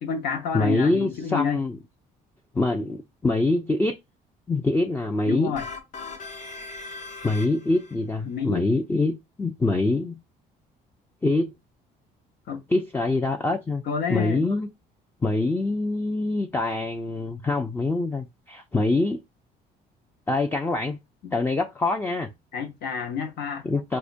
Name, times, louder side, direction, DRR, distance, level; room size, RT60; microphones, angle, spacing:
voice 1, 0.0-1.6 5.3-5.7 8.3-8.7 12.5-12.6 13.9-14.5 21.2-21.3 22.5-23.7, left 6 dB, 75° left, 0.8 m, -29 dB
voice 2, 0.5-1.8 2.5-3.9 4.5-5.5 7.2-9.1 9.4-10.2 11.2-11.5 12.7-13.8 14.1-14.7 15.2-19.2 20.3-21.0 21.3-22.3 23.6-24.0, left 2 dB, 10° left, 0.4 m, -24 dB
sound 1, 5.6-7.9, left 3 dB, 50° left, 1.1 m, -39 dB
4.7 x 2.2 x 2.5 m
cardioid pair, 110°, 17 cm